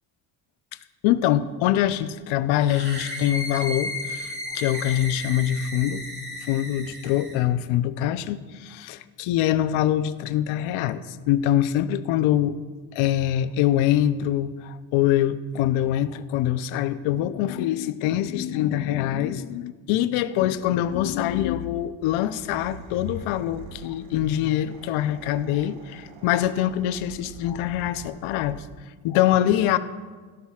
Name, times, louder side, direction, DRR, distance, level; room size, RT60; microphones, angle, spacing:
voice 1, 1.0-6.0 6.4-12.6 12.9-28.6 29.0-29.8, left 12 dB, 85° left, 12 dB, 0.7 m, -24 dB
sound 1, 2.6-7.4, left 1 dB, 20° right, 3.8 m, -34 dB
sound 2, 22.2-28.9, right 6 dB, 65° right, 1.1 m, -45 dB
17.0 x 13.5 x 2.4 m, 1.4 s
supercardioid pair, 65°, 48 cm